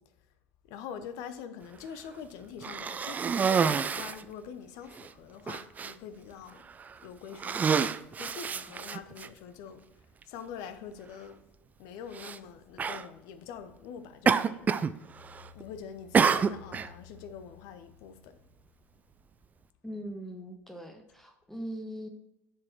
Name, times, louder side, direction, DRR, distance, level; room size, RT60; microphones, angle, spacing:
voice 1, 0.7-6.7 7.0-7.8 8.2-9.8 10.2-11.4 11.8-14.7 15.5-18.4, left 7 dB, 55° left, 0.7 m, -44 dB
Cough, 2.6-4.2 5.0-5.1 5.5-5.9 6.7-6.9 7.3-9.3 10.2-10.3 12.1-12.4 12.8-13.1 14.3-14.9 15.2-15.6 16.1-16.9, right 6 dB, 20° right, 0.3 m, -27 dB
sound 1, 15.1-19.1, left 6 dB, 30° left, 2.3 m, -56 dB
voice 2, 19.8-22.1, equal, 5° left, 0.9 m, -40 dB
7.3 x 4.7 x 4.4 m
figure-of-eight pair, 70°, 7 cm